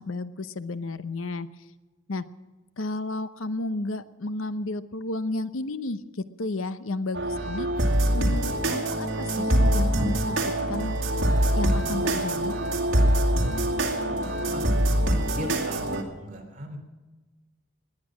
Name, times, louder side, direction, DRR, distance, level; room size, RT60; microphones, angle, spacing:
voice 1, 0.0-1.5 2.1-2.2 2.8-7.9 8.1-11.0 11.6-12.6, left 2 dB, 85° left, 13 dB, 0.8 m, -32 dB
sound 1, 7.1-16.0, right 1 dB, 70° right, 2.4 m, -24 dB
voice 2, 14.5-16.8, equal, 40° right, 1 dB, 3.4 m, -39 dB
19.5 x 10.5 x 6.1 m, 1.2 s
head